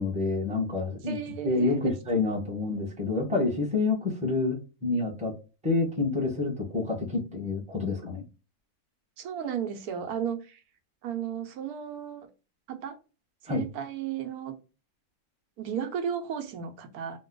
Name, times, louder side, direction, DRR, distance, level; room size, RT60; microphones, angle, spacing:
voice 1, 0.0-1.2 1.4-5.3 5.6-8.2 13.5-13.6, left 3 dB, 5° right, -1 dB, 0.8 m, -28 dB
voice 2, 1.0-1.9 9.2-10.6 11.0-12.3 12.7-13.0 13.4-14.6 15.6-17.2, right 8 dB, 85° right, 6 dB, 1.1 m, -34 dB
2.9 x 2.2 x 3.7 m, 0.32 s
omnidirectional pair, 1.6 m